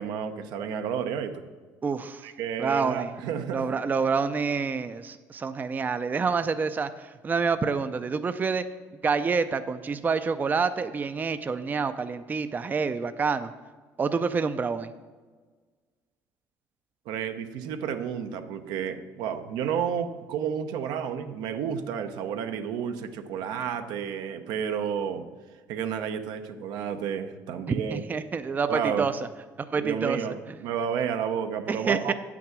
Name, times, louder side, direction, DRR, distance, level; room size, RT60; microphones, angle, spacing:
voice 1, 0.0-1.4 2.2-3.8 17.1-25.3 25.7-28.0 28.7-29.1 29.7-32.1, right 8 dB, 75° right, 8 dB, 0.7 m, -31 dB
voice 2, 1.8-2.3 2.6-3.1 3.5-8.6 9.0-13.5 14.0-14.9 27.7-29.1 29.7-30.2 31.7-32.1, right 5 dB, 25° right, 11 dB, 0.4 m, -27 dB
8.1 x 6.0 x 6.1 m, 1.4 s
supercardioid pair, 95°, 7 cm